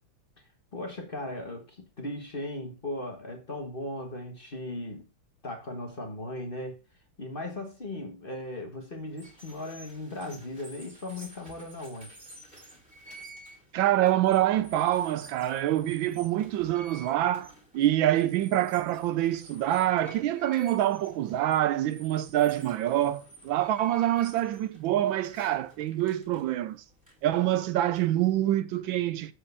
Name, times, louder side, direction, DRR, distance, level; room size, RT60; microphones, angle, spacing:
voice 1, 0.7-5.0 5.4-6.8 7.2-12.2, left 1 dB, 30° left, 1.3 m, -37 dB
sound 1, 9.1-28.3, right 1 dB, 5° right, 2.8 m, -52 dB
voice 2, 13.7-26.8 27.2-29.3, right 13 dB, 80° right, 1.3 m, -26 dB
7.8 x 4.3 x 6.8 m
omnidirectional pair, 2.2 m